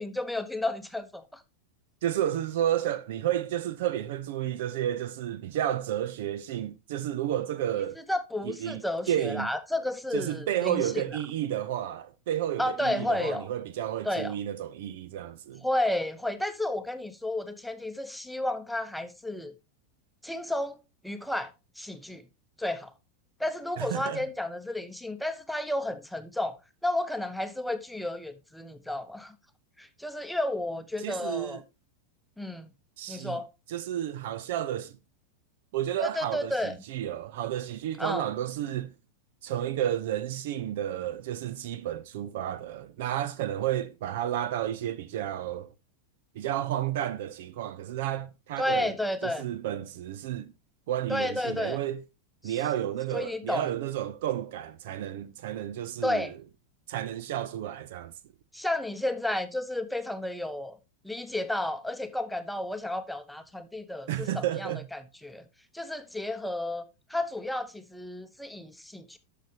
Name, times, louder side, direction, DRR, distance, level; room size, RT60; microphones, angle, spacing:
voice 1, 0.0-1.4 8.1-10.9 12.6-13.5 14.0-14.3 15.6-19.5 20.2-20.8 21.0-22.2 22.6-22.9 23.4-26.6 26.8-29.3 29.8-31.6 32.4-32.7 33.1-33.5 36.0-36.7 38.0-38.3 48.6-49.5 51.1-51.8 52.4-52.6 53.1-53.7 56.0-56.3 58.5-60.8 61.0-65.4 65.7-66.8 67.1-69.2, left 1 dB, ahead, 1.0 m, -32 dB
voice 2, 2.0-8.0 8.4-9.5 10.1-15.6 23.8-24.3 31.0-31.6 33.0-33.4 33.7-35.0 35.7-38.9 39.4-45.7 46.3-48.9 49.2-50.5 50.9-52.0 52.4-56.3 56.9-58.1 64.1-64.9, right 11 dB, 55° right, 0.6 m, -31 dB
11.5 x 6.8 x 2.9 m
figure-of-eight pair, 90°, 0 cm